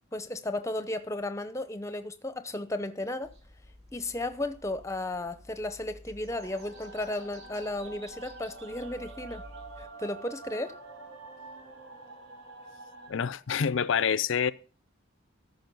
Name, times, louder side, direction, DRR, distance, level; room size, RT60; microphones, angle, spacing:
voice 1, 0.1-3.3 3.9-9.4 9.8-10.8, left 1 dB, 15° left, 0.7 m, -34 dB
sound 1, 3.2-9.9, equal, 30° right, 4.0 m, -52 dB
sound 2, 6.3-13.1, right 3 dB, 85° right, 5.0 m, -47 dB
voice 2, 13.1-14.5, left 7 dB, 65° left, 0.5 m, -27 dB
13.5 x 5.4 x 5.4 m
head